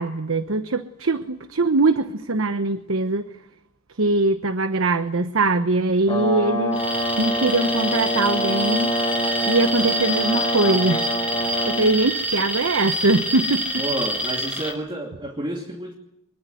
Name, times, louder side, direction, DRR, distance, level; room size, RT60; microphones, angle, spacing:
voice 1, 0.0-3.3 4.0-6.8 7.2-8.9 9.5-11.1 11.4-13.8, right 2 dB, 80° right, 11 dB, 1.1 m, -22 dB
Brass instrument, 6.1-11.9, equal, 20° left, 5.0 m, -26 dB
Alarm, 6.7-14.7, equal, 5° right, 6.2 m, -27 dB
voice 2, 13.8-15.9, right 1 dB, 25° right, 2 dB, 2.7 m, -30 dB
24.0 x 22.0 x 9.3 m, 0.78 s
head